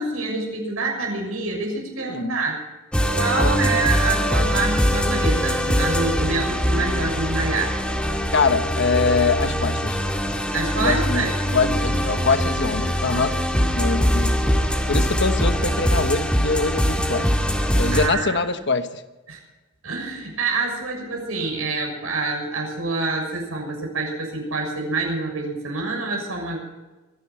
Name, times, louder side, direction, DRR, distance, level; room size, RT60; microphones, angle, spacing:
voice 1, 0.0-2.6 3.1-7.7 10.5-11.3 17.9-18.4 19.3-19.4 19.8-26.6, right 3 dB, 75° right, 0 dB, 6.6 m, -26 dB
sound 1, 2.9-18.1, equal, 5° left, 1.9 m, -22 dB
voice 2, 3.4-3.8 8.3-10.0 10.8-13.4 13.7-14.4 14.9-17.3 17.8-19.0, left 4 dB, 55° left, 9 dB, 1.2 m, -24 dB
24.5 x 11.5 x 4.5 m, 1.1 s
head